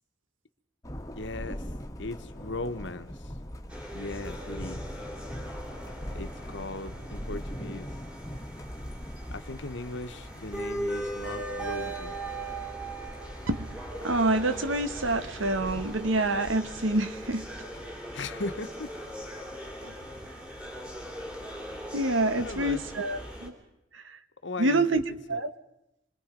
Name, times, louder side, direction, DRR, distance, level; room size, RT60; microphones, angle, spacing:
Thunder, 0.8-17.9, equal, 15° left, 1.5 m, -42 dB
voice 1, 1.2-1.7 2.0-3.4 3.9-4.9 6.1-7.9 9.3-12.2 18.1-18.9 22.4-22.8 24.4-25.0 25.3-25.5, left 2 dB, 65° left, 1.2 m, -38 dB
sound 1, 3.7-23.5, right 1 dB, 5° right, 3.3 m, -39 dB
voice 2, 13.5-17.5 19.8-19.9 21.9-23.5 23.9-24.2 24.6-25.0 25.3-25.5, right 2 dB, 80° right, 1.4 m, -27 dB
26.5 x 23.5 x 5.2 m
head